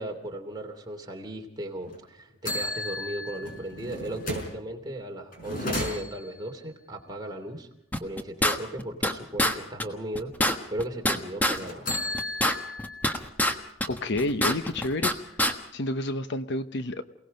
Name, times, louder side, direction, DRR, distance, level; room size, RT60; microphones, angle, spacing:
voice 1, 0.0-7.7 8.0-10.3 10.7-11.9, right 1 dB, 20° right, 2 dB, 2.9 m, -36 dB
sound 1, 1.8-2.0 2.4-4.6 5.3-6.4 11.5-13.1 13.6-13.7 14.1-15.1, left 1 dB, 45° left, 5.4 m, -34 dB
sound 2, 7.9-9.1 9.4-9.5 9.8-9.9 10.1-11.6 11.9-13.5 13.8-15.1 15.4-15.5, left 1 dB, 10° left, 1.3 m, -25 dB
voice 2, 13.9-15.1 15.7-17.0, left 2 dB, 60° left, 10 dB, 1.0 m, -29 dB
28.5 x 18.5 x 5.3 m, 0.78 s
head